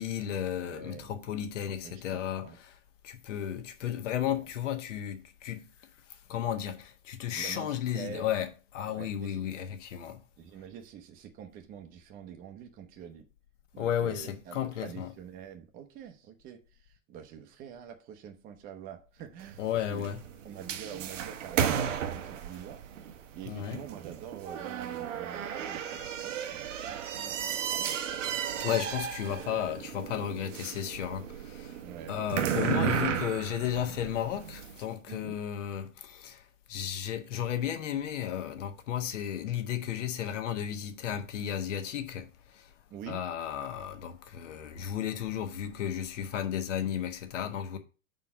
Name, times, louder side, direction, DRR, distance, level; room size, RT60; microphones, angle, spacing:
voice 1, 0.0-2.7 3.0-5.7 6.1-8.5 8.7-10.2 13.8-15.1 19.6-20.2 23.5-23.8 28.6-31.8 32.1-36.4 36.7-42.7 43.1-47.8, left 10 dB, 65° left, 1.3 m, -33 dB
voice 2, 0.5-1.1 1.8-2.6 4.3-4.5 7.3-8.2 8.9-9.6 10.4-13.3 13.7-20.1 20.4-28.0 31.8-32.2 35.1-35.4 42.9-43.2, right 8 dB, 20° right, 0.8 m, -46 dB
sound 1, 19.4-34.8, right 8 dB, 65° right, 0.9 m, -34 dB
5.6 x 4.3 x 5.6 m
hypercardioid pair, 135°, 40 cm